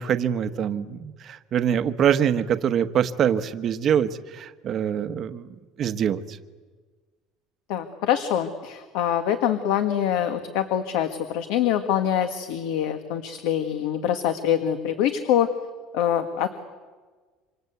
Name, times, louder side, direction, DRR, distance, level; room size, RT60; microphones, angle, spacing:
voice 1, 0.0-5.5 5.8-6.4, right 8 dB, 30° right, 10 dB, 1.1 m, -24 dB
voice 2, 7.7-15.5 15.9-16.5, left 10 dB, 65° left, 8 dB, 1.7 m, -24 dB
28.0 x 26.0 x 8.2 m, 1.4 s
cardioid pair, 175°, 0 cm